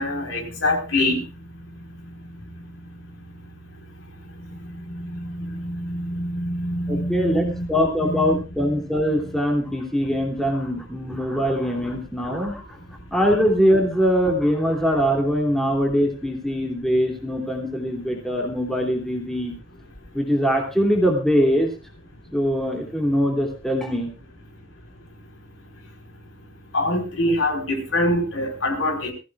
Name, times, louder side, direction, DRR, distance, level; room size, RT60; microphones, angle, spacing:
voice 1, 0.0-2.7 3.7-7.7 8.0-8.4 9.7-9.8 12.9-13.0 20.1-20.2 22.1-22.2 24.5-24.6 25.0-29.1, left 1 dB, 80° left, 2 dB, 4.2 m, -27 dB
voice 2, 6.9-12.6 13.1-19.5 20.1-21.7 22.3-24.1, equal, ahead, 0 dB, 2.9 m, -22 dB
21.5 x 15.0 x 2.4 m, 0.31 s
head